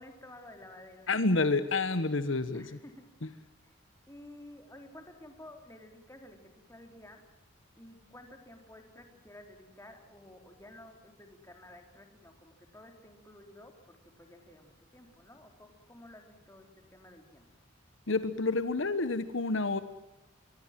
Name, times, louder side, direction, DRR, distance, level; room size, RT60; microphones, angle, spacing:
voice 1, 0.0-1.3 2.5-3.1 3.6-3.7 4.1-7.2 7.8-17.4, left 1 dB, 15° left, 4 dB, 3.9 m, -53 dB
voice 2, 1.1-2.7 18.1-19.8, left 3 dB, 70° left, 12 dB, 1.3 m, -29 dB
25.5 x 22.5 x 7.6 m, 0.95 s
head